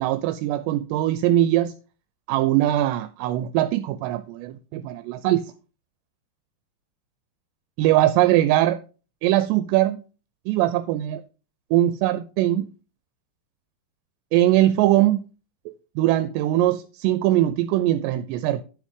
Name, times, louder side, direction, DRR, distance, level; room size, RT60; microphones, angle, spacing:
voice 1, 0.0-1.7 2.3-5.4 7.8-8.8 9.2-10.0 10.5-11.2 11.7-12.7 14.3-15.2 16.0-18.6, right 14 dB, 85° right, 11 dB, 2.7 m, -21 dB
11.0 x 6.3 x 3.7 m, 0.35 s
omnidirectional pair, 5.0 m